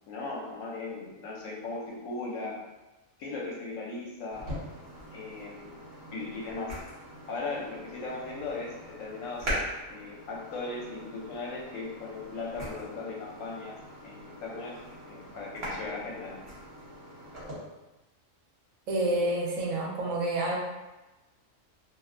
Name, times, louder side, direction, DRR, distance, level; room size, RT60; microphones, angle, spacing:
voice 1, 0.1-2.6 3.2-4.5 5.1-5.8 6.1-6.7 7.3-9.6 9.9-13.8 14.0-16.4, left 3 dB, 75° left, -3 dB, 1.0 m, -38 dB
sound 1, 4.3-17.5, equal, 55° right, 1.1 m, -41 dB
voice 2, 18.9-20.6, right 1 dB, 75° right, -2 dB, 0.9 m, -28 dB
2.5 x 2.1 x 2.4 m, 1.1 s
omnidirectional pair, 1.4 m